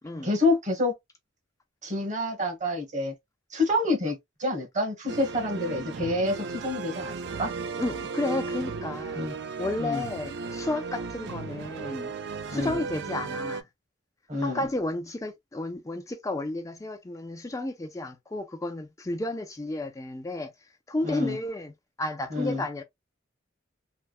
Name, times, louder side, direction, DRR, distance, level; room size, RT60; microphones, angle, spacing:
voice 1, 0.2-0.9 1.8-3.1 3.5-7.5 9.2-9.3 9.8-10.0 12.5-12.8 14.3-14.6 21.0-21.4 22.3-22.6, left 2 dB, 40° right, 1.3 m, -28 dB
sound 1, 5.1-13.6, right 4 dB, 60° right, 0.4 m, -35 dB
voice 2, 7.8-9.2 9.6-12.1 12.5-13.6 14.4-20.5 20.9-21.7 22.0-22.8, left 2 dB, 15° left, 0.4 m, -32 dB
3.4 x 2.2 x 2.4 m
head